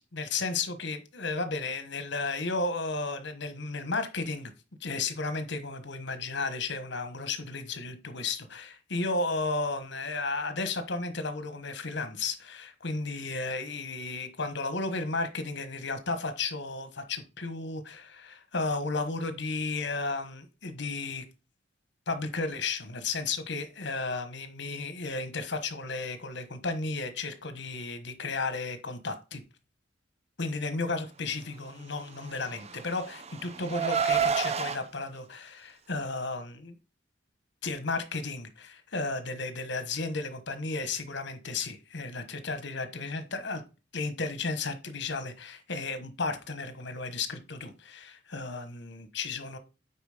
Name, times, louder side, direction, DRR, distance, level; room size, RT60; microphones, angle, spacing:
voice 1, 0.0-4.5 4.8-21.2 22.1-29.4 30.4-36.7 37.6-43.6 43.9-49.6, left 3 dB, 65° left, 1.3 m, -33 dB
Car, 32.3-34.8, right 6 dB, 35° right, 0.6 m, -29 dB
9.2 x 4.1 x 5.1 m
head